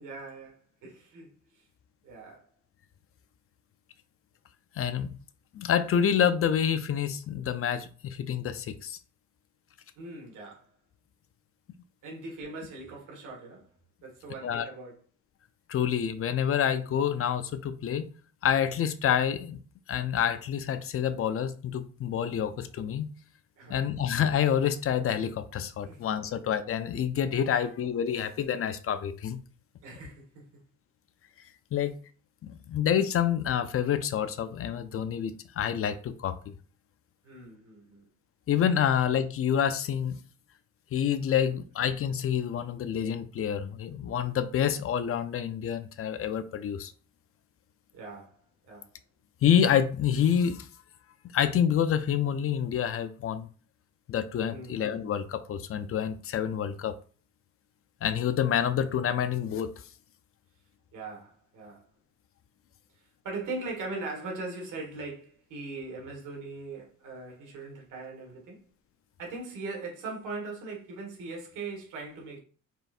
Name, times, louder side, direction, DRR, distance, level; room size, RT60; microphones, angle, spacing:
voice 1, 0.0-1.3 2.0-2.5 10.0-10.7 12.0-13.7 14.0-14.9 23.6-23.8 25.8-26.3 29.8-30.6 37.2-38.1 38.8-39.0 41.3-41.6 47.9-48.4 48.7-48.9 54.5-54.8 60.9-61.9 63.2-68.6 69.2-72.4, right 3 dB, 90° right, 1.6 m, -40 dB
voice 2, 4.8-5.2 5.5-9.0 14.4-14.7 15.7-18.1 18.4-19.6 19.9-23.1 23.7-29.4 31.7-31.9 32.7-36.4 38.5-40.2 40.9-46.9 49.4-50.7 51.3-53.5 54.1-56.9 58.0-59.7, left 9 dB, 50° left, 0.5 m, -27 dB
4.5 x 3.1 x 2.5 m
cardioid pair, 90°, 30 cm